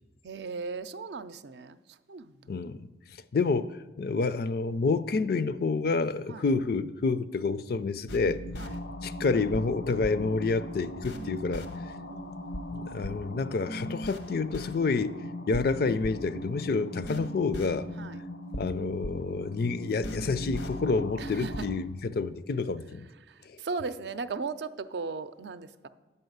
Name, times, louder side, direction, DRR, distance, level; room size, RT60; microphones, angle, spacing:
voice 1, 0.2-1.8 2.1-2.3 6.3-6.4 8.6-8.7 11.1-12.7 18.0-18.2 21.2-21.7 23.3-25.9, right 4 dB, 70° right, 0.5 m, -38 dB
voice 2, 2.5-2.9 3.3-8.4 9.0-11.7 12.9-15.2 15.5-17.9 18.5-23.1, left 4 dB, 60° left, 0.4 m, -28 dB
sound 1, 8.1-21.8, equal, 85° left, 0.9 m, -38 dB
9.0 x 5.6 x 7.9 m
head